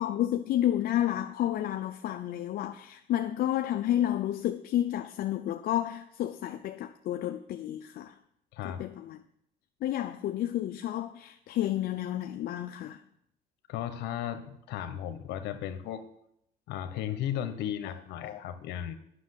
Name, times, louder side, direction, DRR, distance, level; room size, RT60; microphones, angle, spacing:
voice 1, 0.0-8.2 8.6-9.2 9.8-13.0 18.2-18.4, left 12 dB, 65° left, 0.6 m, -31 dB
voice 2, 8.5-8.8 13.7-16.0 16.7-18.9, left 10 dB, 85° left, 1.1 m, -35 dB
9.8 x 6.1 x 8.1 m
cardioid pair, 110°, 17 cm